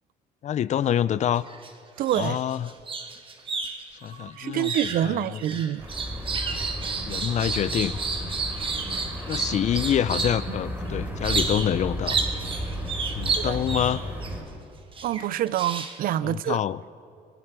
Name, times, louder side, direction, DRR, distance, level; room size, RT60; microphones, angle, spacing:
voice 1, 0.4-1.4 2.1-2.7 4.0-4.7 5.0-5.6 7.1-8.0 9.3-12.2 12.6-12.7 13.2-14.0 16.2-16.8, left 10 dB, 45° left, 0.4 m, -26 dB
sound 1, 1.4-1.7 2.0-10.5 11.2-11.8 12.0-14.3 15.0-16.1, right 4 dB, 30° right, 1.3 m, -31 dB
voice 2, 2.0-2.4 4.4-5.9 13.3-13.6 15.0-16.6, right 12 dB, 60° right, 0.4 m, -26 dB
sound 2, 5.8-14.4, equal, 15° right, 3.9 m, -34 dB
23.5 x 11.0 x 4.7 m
cardioid pair, 110°, 17 cm